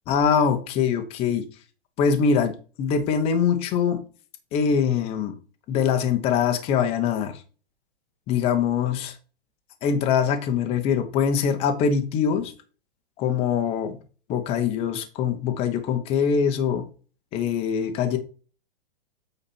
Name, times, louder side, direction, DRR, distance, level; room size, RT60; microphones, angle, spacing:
voice 1, 0.1-1.4 2.0-4.0 4.5-5.3 5.7-7.4 8.3-9.2 9.8-12.5 13.2-14.0 14.3-16.8 17.3-18.2, left 7 dB, 20° left, 6 dB, 0.9 m, -23 dB
8.5 x 4.1 x 4.3 m, 0.36 s
hypercardioid pair, 165°, 32 cm